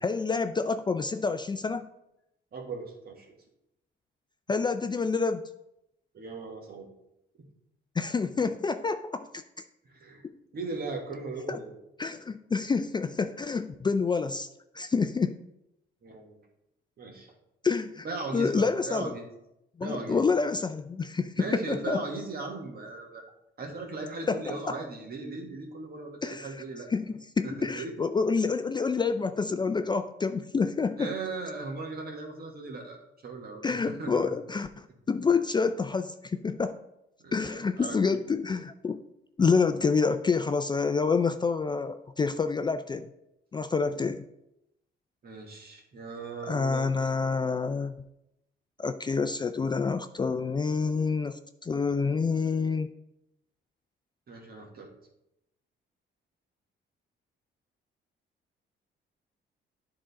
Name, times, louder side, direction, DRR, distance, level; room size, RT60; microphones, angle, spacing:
voice 1, 0.0-1.9 4.5-5.4 8.0-9.4 10.2-10.3 11.5-11.6 12.0-14.5 14.7-15.4 17.6-18.1 18.3-19.2 19.8-22.0 24.3-24.6 26.2-26.5 26.9-31.1 33.6-36.8 37.3-39.0 39.4-43.1 43.5-44.3 46.5-47.9 48.8-52.9, left 4 dB, 25° left, 9 dB, 0.3 m, -28 dB
voice 2, 2.5-3.3 6.1-6.9 9.9-10.2 10.5-11.8 16.0-16.4 17.0-17.3 18.0-19.3 19.8-20.2 21.4-23.2 23.6-26.9 27.4-28.1 31.0-34.2 37.2-38.0 45.2-47.1 54.3-54.9, right 3 dB, 50° right, 1 dB, 1.8 m, -38 dB
9.9 x 3.8 x 4.1 m, 0.85 s
cardioid pair, 90°, 20 cm